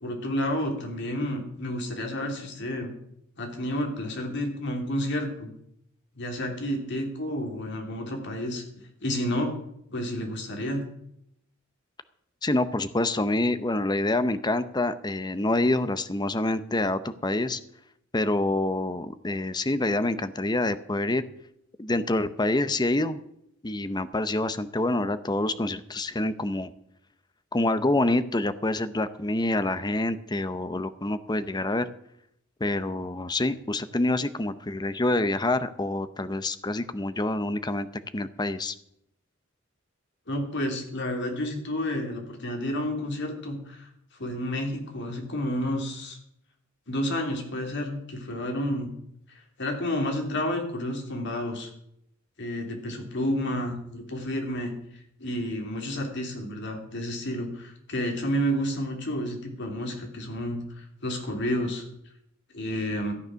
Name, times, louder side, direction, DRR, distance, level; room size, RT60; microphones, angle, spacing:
voice 1, 0.0-2.9 3.4-5.5 6.2-8.6 9.0-9.5 9.9-10.8 40.3-43.9 44.2-46.2 46.9-48.9 49.6-51.7 52.4-54.7 55.2-61.8 62.5-63.1, equal, 60° left, 3 dB, 3.0 m, -30 dB
voice 2, 12.4-17.6 18.1-21.2 21.8-23.2 23.6-26.7 27.5-31.9 32.6-37.9 38.1-38.7, left 2 dB, 20° left, 12 dB, 0.7 m, -27 dB
13.5 x 9.4 x 6.3 m, 0.74 s
head